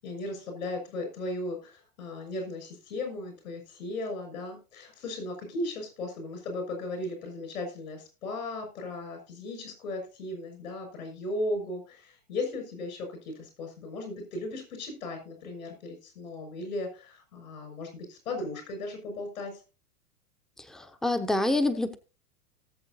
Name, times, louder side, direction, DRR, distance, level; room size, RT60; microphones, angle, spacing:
voice 1, 0.0-19.6, left 2 dB, 70° left, 6.4 m, -36 dB
voice 2, 20.7-22.0, left 2 dB, ahead, 0.8 m, -27 dB
18.5 x 7.5 x 2.7 m
hypercardioid pair, 105°, 46 cm